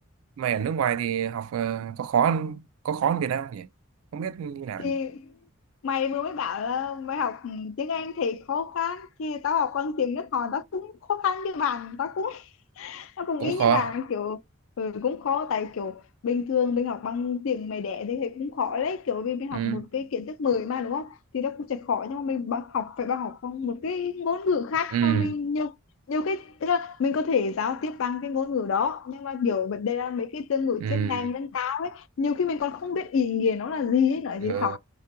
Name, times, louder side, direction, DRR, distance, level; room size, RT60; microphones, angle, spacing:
voice 1, 0.4-3.7 4.1-5.0 13.4-13.9 19.5-19.8 24.9-25.4 30.8-31.3 34.5-34.8, right 8 dB, 80° right, 0.3 m, -26 dB
voice 2, 4.8-5.3 5.8-12.5 12.8-14.4 14.8-25.7 26.1-34.8, left 6 dB, 70° left, 0.4 m, -28 dB
2.4 x 2.1 x 2.7 m
head